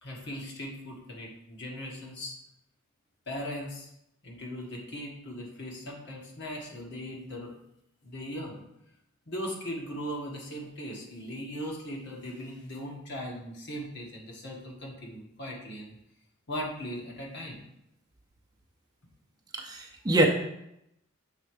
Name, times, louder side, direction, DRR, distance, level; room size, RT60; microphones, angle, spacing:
voice 1, 0.0-2.4 3.3-3.9 4.2-7.5 8.0-8.6 9.3-15.9 16.5-17.6, equal, 60° left, -2 dB, 1.6 m, -39 dB
voice 2, 19.5-20.2, right 1 dB, 20° right, 0 dB, 0.7 m, -25 dB
6.5 x 3.8 x 4.8 m, 0.81 s
head